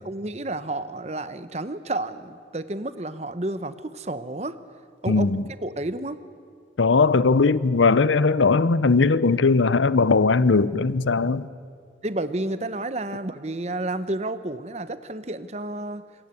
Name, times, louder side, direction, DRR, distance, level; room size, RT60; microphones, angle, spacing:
voice 1, 0.0-4.6 5.0-5.3 5.6-6.2 12.0-16.0, right 2 dB, 35° right, 1.0 m, -31 dB
voice 2, 5.1-5.4 6.8-11.5, left 4 dB, 85° left, 0.7 m, -19 dB
26.0 x 22.5 x 8.4 m
head